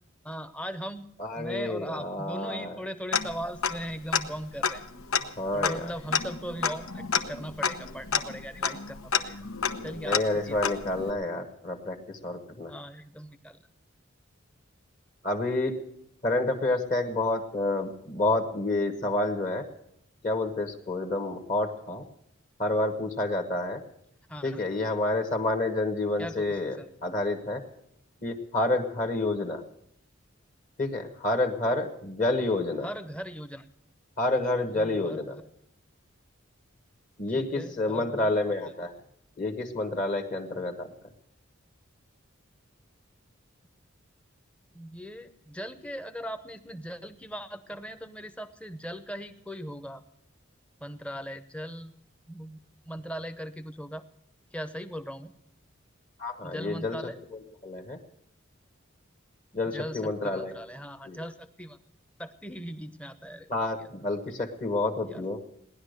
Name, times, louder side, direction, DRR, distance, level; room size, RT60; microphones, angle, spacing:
voice 1, 0.2-1.1 1.4-4.8 5.5-9.4 9.8-10.8 12.7-13.6 24.3-24.7 26.2-26.9 32.8-33.7 34.7-35.5 37.3-38.3 44.7-50.0 50.8-51.9 52.3-54.0 54.5-55.3 56.4-57.2 59.7-61.8 62.2-63.5 63.8-63.9 64.3-64.4 65.0-65.2, equal, 5° left, 10 dB, 0.7 m, -39 dB
voice 2, 1.2-2.8 5.4-5.9 10.0-12.7 15.2-15.8 16.2-19.7 20.2-22.0 22.6-23.8 24.4-26.8 27.0-27.6 28.2-29.6 30.8-32.9 34.2-35.3 37.2-38.9 39.4-40.9 56.2-57.0 57.3-58.0 59.5-60.5 61.1-61.2 63.5-65.4, left 2 dB, 40° left, 3 dB, 1.4 m, -29 dB
Tick-tock, 3.1-4.2 4.6-11.1, left 6 dB, 90° left, 1.0 m, -30 dB
18.0 x 11.0 x 6.6 m, 0.74 s
head